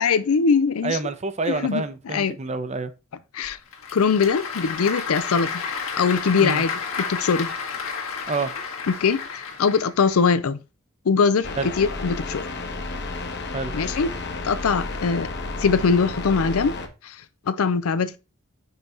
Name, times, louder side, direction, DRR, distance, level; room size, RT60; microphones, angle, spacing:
voice 1, 0.0-1.0 1.5-2.4 3.3-3.6 3.9-5.6 6.0-6.7 7.1-7.5 9.0-10.6 11.1-12.5 13.7-14.1 14.4-15.3 15.6-16.8 17.0-17.1 17.5-18.2, left 5 dB, 90° left, 0.5 m, -22 dB
voice 2, 0.8-2.9 6.4-6.6 8.3-8.5 11.6-11.7 13.5-13.7, right 3 dB, 30° right, 0.6 m, -27 dB
Applause / Crowd, 3.4-10.2, left 5 dB, 70° left, 1.6 m, -31 dB
sound 1, 11.4-16.9, left 3 dB, 55° left, 1.0 m, -32 dB
5.6 x 4.0 x 4.3 m
head